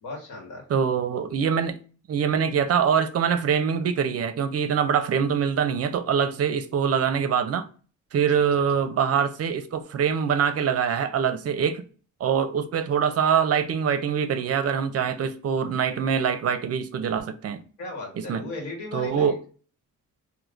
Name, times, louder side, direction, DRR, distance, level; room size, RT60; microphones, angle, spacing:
voice 1, 0.0-0.6 8.4-8.5 17.8-19.3, left 2 dB, 80° left, 1.6 m, -36 dB
voice 2, 0.7-1.8 2.1-7.7 8.1-11.8 12.2-17.6 18.2-18.4 18.9-19.4, right 7 dB, 50° right, 0.5 m, -24 dB
3.5 x 2.6 x 2.5 m
cardioid pair, 90°, 30 cm